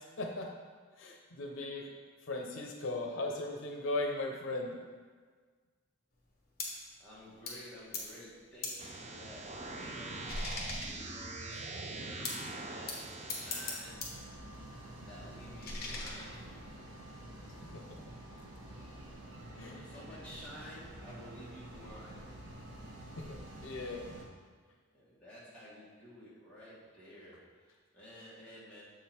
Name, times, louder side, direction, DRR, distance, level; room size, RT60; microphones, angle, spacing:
voice 1, 0.2-0.5 1.0-1.9 2.3-4.8 17.7-18.0 19.6-19.8 23.2-24.1, left 2 dB, 80° left, 1 dB, 0.7 m, -38 dB
sound 1, 6.6-6.9 7.5-7.7 7.9-8.2 8.6-8.9 9.3-11.4 12.2-12.5 12.9-14.2 14.5-16.8, left 3 dB, 50° left, 1.0 m, -42 dB
voice 2, 7.0-14.1 15.0-16.5 19.2-22.4 24.9-28.8, equal, 5° left, -9 dB, 1.7 m, -52 dB
sound 2, 8.8-13.8, right 2 dB, 35° right, 0.5 m, -43 dB
sound 3, 13.8-24.2, right 1 dB, 75° right, 1.0 m, -49 dB
7.0 x 3.8 x 4.3 m, 1.5 s
head